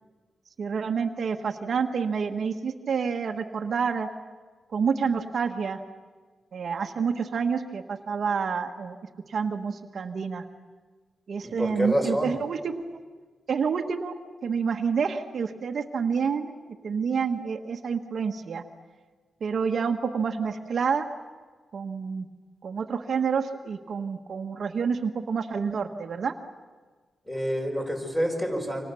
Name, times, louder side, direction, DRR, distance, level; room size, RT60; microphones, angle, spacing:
voice 1, 0.6-4.1 4.7-5.8 6.5-9.0 9.3-10.4 11.3-12.8 13.5-14.1 14.4-16.5 16.8-18.6 19.4-21.1 21.7-22.3 22.6-26.3, right 6 dB, 60° right, 5 dB, 1.4 m, -28 dB
voice 2, 11.4-12.3 27.3-28.9, equal, 10° left, 2 dB, 5.3 m, -27 dB
29.5 x 26.0 x 7.0 m, 1.4 s
wide cardioid pair, 120°, 0 cm